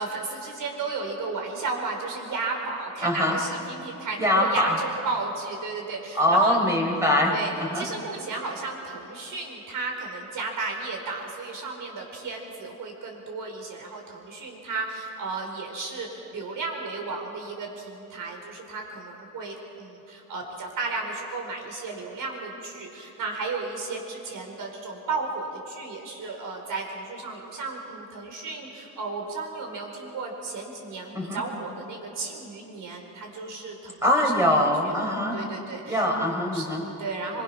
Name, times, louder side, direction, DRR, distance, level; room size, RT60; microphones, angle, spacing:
voice 1, 0.0-7.0 7.3-34.5 35.0-36.0 36.5-37.4, right 3 dB, 60° right, 1 dB, 4.8 m, -34 dB
voice 2, 3.0-3.4 4.2-4.8 6.1-7.9 31.1-31.4 34.0-35.4 35.8-36.8, left 1 dB, 10° right, 0 dB, 3.9 m, -23 dB
25.0 x 23.0 x 6.1 m, 3.0 s
cardioid pair, 130°, 36 cm